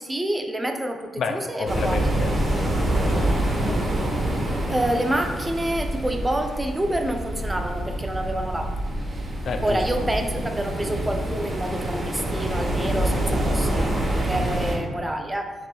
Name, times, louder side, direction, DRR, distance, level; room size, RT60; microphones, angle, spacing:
voice 1, 0.0-2.1 4.7-8.7 9.6-15.5, right 1 dB, 10° right, 4 dB, 0.4 m, -27 dB
voice 2, 1.2-3.3 3.7-3.9 9.2-9.8 13.0-13.3, left 4 dB, 65° left, 6 dB, 0.3 m, -31 dB
sound 1, 1.7-14.8, right 1 dB, 30° right, 0.9 m, -26 dB
5.8 x 3.0 x 2.2 m, 1.4 s
cardioid pair, 75°, 0 cm